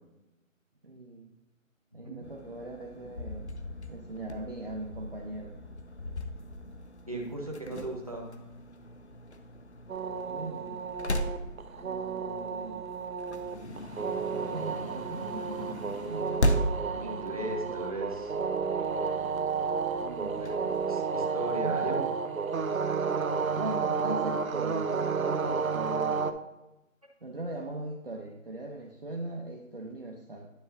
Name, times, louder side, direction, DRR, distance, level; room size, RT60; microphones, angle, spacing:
voice 1, 0.8-1.3 1.9-3.5 3.9-5.6 10.3-10.8 11.8-12.9 14.3-16.6 16.9-17.5 20.0-20.7 21.6-22.1 23.6-26.3 27.2-30.5, right 2 dB, 45° right, -1 dB, 0.7 m, -40 dB
sound 1, 2.2-20.9, equal, 55° left, 0.6 m, -38 dB
voice 2, 7.1-8.3 17.0-18.3 20.4-22.0, right 1 dB, 25° right, -1 dB, 1.0 m, -36 dB
sound 2, 9.9-26.3, right 5 dB, 80° right, 0.8 m, -31 dB
10.0 x 6.4 x 2.7 m, 0.97 s
figure-of-eight pair, 180°, 41 cm